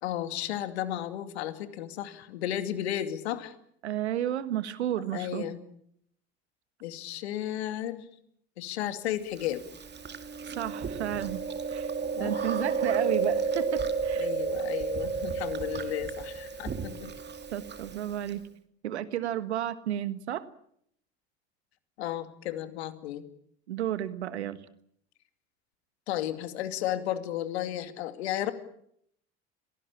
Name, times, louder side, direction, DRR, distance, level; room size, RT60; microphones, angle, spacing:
voice 1, 0.0-3.5 5.1-5.6 6.8-8.1 8.6-9.6 12.2-12.4 14.2-17.1 22.0-23.2 26.1-28.5, left 12 dB, 80° left, 10 dB, 2.5 m, -33 dB
voice 2, 3.8-5.5 10.4-11.4 11.7-11.9 12.2-14.3 17.5-18.4 18.8-20.5 23.7-24.6, right 11 dB, 85° right, 14 dB, 1.5 m, -32 dB
Chewing mastication, 9.4-18.3, right 5 dB, 30° right, 2.4 m, -32 dB
25.0 x 18.5 x 8.6 m, 0.70 s
hypercardioid pair, 70°, 32 cm